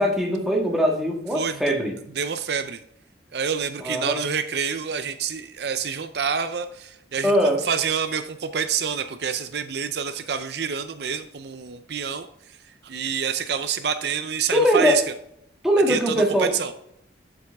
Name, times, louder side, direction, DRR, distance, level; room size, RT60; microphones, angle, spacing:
voice 1, 0.0-1.9 3.8-4.2 7.2-7.6 14.5-15.0 15.6-16.5, equal, ahead, -1 dB, 1.6 m, -21 dB
voice 2, 1.3-1.7 2.1-2.8 3.3-15.0 15.9-16.7, right 6 dB, 60° right, 10 dB, 0.5 m, -28 dB
7.6 x 7.2 x 3.5 m, 0.74 s
head